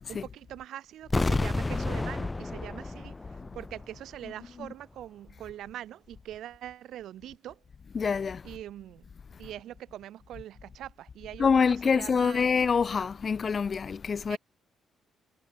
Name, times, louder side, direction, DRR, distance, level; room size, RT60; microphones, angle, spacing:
voice 1, 0.1-7.6 8.4-9.0 9.4-11.5 11.8-12.4 14.3-14.4, right 12 dB, 75° right, 4.4 m, -43 dB
sound 1, 1.1-4.3, left 2 dB, 20° left, 1.7 m, -30 dB
voice 2, 7.9-8.5 11.4-14.4, left 5 dB, 40° left, 1.6 m, -26 dB
cardioid pair, 90°, 0 cm